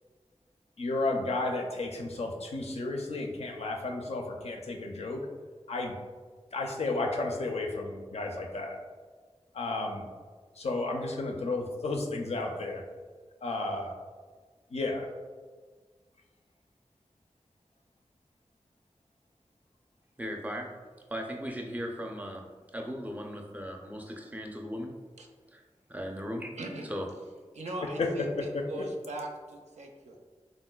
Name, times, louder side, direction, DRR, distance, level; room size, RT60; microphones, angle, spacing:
voice 1, 0.8-5.2 5.7-6.0 6.5-8.8 9.5-10.1 10.6-12.8 13.4-13.9 14.7-15.1 28.0-28.1 28.5-28.6, left 2 dB, 65° left, 1 dB, 0.4 m, -32 dB
voice 2, 20.2-20.8 21.1-25.0 25.5-25.6 25.9-26.5 26.9-27.1, equal, 15° right, 2 dB, 0.4 m, -37 dB
voice 3, 26.6-26.9 27.5-30.2, right 1 dB, 75° right, 2 dB, 0.4 m, -40 dB
3.7 x 2.1 x 2.2 m, 1.5 s
wide cardioid pair, 50°, 12 cm